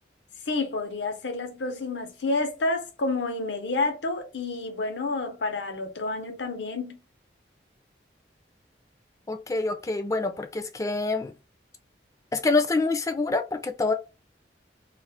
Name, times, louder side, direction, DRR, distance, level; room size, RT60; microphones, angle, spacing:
voice 1, 0.5-7.0, left 3 dB, 85° left, 0.8 m, -29 dB
voice 2, 9.3-11.3 12.3-13.9, left 3 dB, 20° left, 0.3 m, -26 dB
2.4 x 2.4 x 3.4 m
head